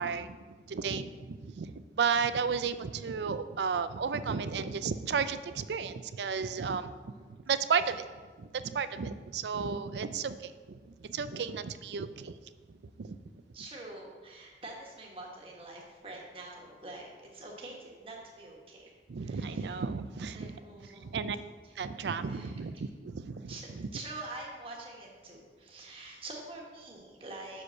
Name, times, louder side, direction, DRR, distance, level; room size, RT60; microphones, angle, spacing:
voice 1, 0.0-8.1 8.4-12.4 12.7-13.2 19.1-20.6 21.0-21.4 21.8-23.9, right 5 dB, 80° right, 12 dB, 0.4 m, -33 dB
voice 2, 13.5-18.9 19.2-19.8 20.3-21.1 22.3-22.5 23.5-23.7 23.9-27.6, right 2 dB, 30° right, -1 dB, 1.4 m, -45 dB
6.3 x 5.1 x 6.9 m, 1.4 s
head